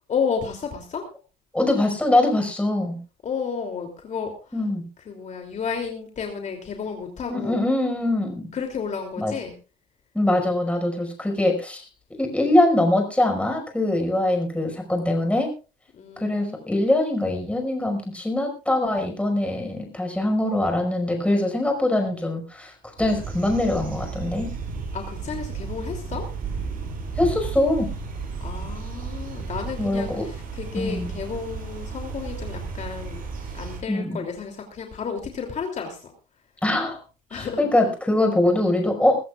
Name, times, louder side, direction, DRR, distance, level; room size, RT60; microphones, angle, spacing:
voice 1, 0.1-1.0 3.2-4.6 5.0-7.6 8.5-9.6 15.9-16.9 24.9-26.2 28.4-33.2 33.5-36.1 37.3-37.7, left 6 dB, 45° left, 3 dB, 3.0 m, -32 dB
voice 2, 1.5-3.0 4.5-4.9 7.3-8.5 9.2-9.3 10.1-11.8 12.2-15.5 16.2-24.5 27.2-27.9 29.8-30.2 30.7-31.1 33.9-34.2 36.6-37.0 37.3-39.3, left 1 dB, 5° left, 3 dB, 5.4 m, -23 dB
sound 1, 23.0-33.8, right 4 dB, 55° right, 6.7 m, -33 dB
22.0 x 14.5 x 2.4 m, 0.33 s
cardioid pair, 110°, 17 cm